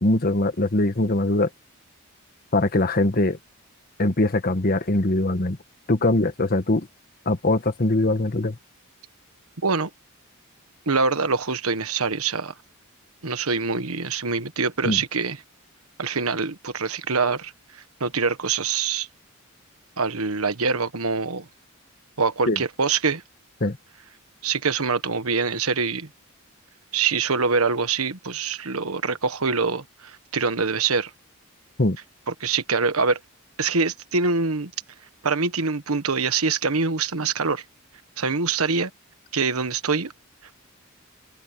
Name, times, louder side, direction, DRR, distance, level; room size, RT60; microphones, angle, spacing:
voice 1, 0.0-1.5 2.5-3.4 4.0-5.6 5.9-6.9 7.2-8.6 14.8-15.0 22.5-22.6 23.6-23.8 31.8-32.0, left 2 dB, 45° left, 1.3 m, -22 dB
voice 2, 10.9-12.5 13.2-15.4 16.0-19.1 20.0-21.5 22.2-23.2 24.4-26.1 26.9-31.1 32.3-33.2 33.6-34.7 35.2-37.6 38.2-38.9 39.3-40.1, right 4 dB, 85° right, 1.4 m, -24 dB
head